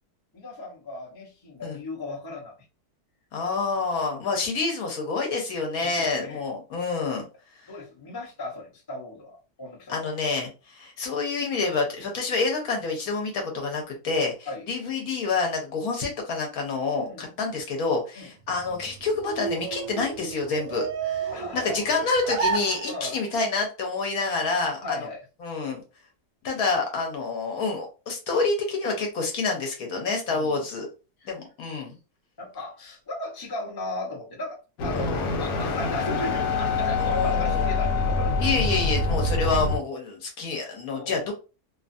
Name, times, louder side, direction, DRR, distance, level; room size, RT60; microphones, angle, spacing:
voice 1, 0.3-2.5 4.1-4.3 5.8-6.4 7.7-10.1 14.5-14.7 16.9-17.3 18.1-18.3 21.3-21.8 22.9-23.2 24.8-25.2 30.3-30.6 31.2-31.3 32.4-38.6 39.0-39.3 40.4-40.5 40.9-41.3, left 2 dB, 20° left, -3 dB, 0.7 m, -37 dB
voice 2, 3.3-7.2 9.9-25.0 25.4-25.8 26.4-30.9 31.3-31.9 34.9-35.3 37.0-37.7 38.4-41.3, left 4 dB, 70° left, 1 dB, 1.2 m, -28 dB
sound 1, 18.4-23.4, right 6 dB, 70° right, 0.9 m, -32 dB
sound 2, 34.8-39.8, left 3 dB, 90° left, 1.2 m, -25 dB
2.7 x 2.4 x 2.5 m, 0.32 s
omnidirectional pair, 1.7 m